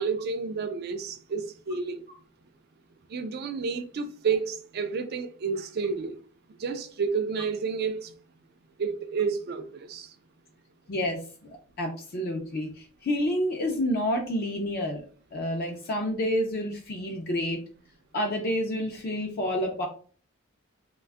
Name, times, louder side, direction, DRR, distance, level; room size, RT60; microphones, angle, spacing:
voice 1, 0.0-2.1 3.1-6.2 6.6-8.1 8.8-10.1, right 5 dB, 45° right, 0.3 m, -30 dB
voice 2, 10.9-15.0 15.3-17.6 18.1-19.9, equal, 45° left, 0.4 m, -29 dB
2.5 x 2.2 x 3.4 m
head